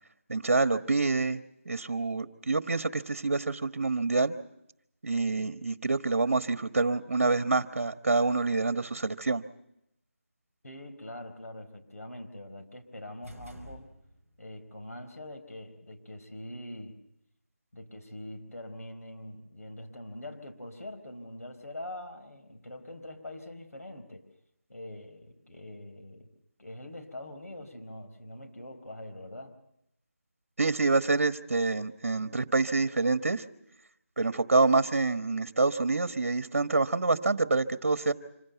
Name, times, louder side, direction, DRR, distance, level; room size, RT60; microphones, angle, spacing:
voice 1, 0.3-1.4 1.6-4.3 5.0-9.4 30.6-33.4 34.2-38.1, right 3 dB, 60° right, 11 dB, 1.3 m, -27 dB
voice 2, 10.6-13.9 14.4-17.0 17.7-24.3 24.7-26.3 26.6-29.5, left 1 dB, 90° left, 6 dB, 4.4 m, -43 dB
sound 1, 13.2-14.5, equal, 10° left, 3.0 m, -48 dB
26.0 x 16.0 x 9.3 m, 0.79 s
figure-of-eight pair, 175°, 8 cm